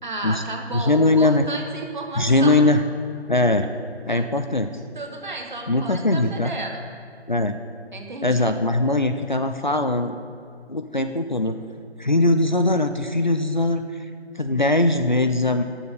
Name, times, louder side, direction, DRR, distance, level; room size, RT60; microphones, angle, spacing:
voice 1, 0.0-2.6 4.1-4.4 4.9-6.8 7.9-8.5, right 2 dB, 45° right, 2 dB, 1.2 m, -33 dB
voice 2, 0.7-1.4 2.2-2.8 3.3-3.7 4.1-4.7 5.7-6.5 7.3-7.6 8.2-10.2 10.7-11.6 12.0-13.8 14.4-15.6, left 2 dB, 45° left, 7 dB, 0.4 m, -20 dB
11.5 x 6.9 x 5.1 m, 2.3 s
figure-of-eight pair, 160°, 34 cm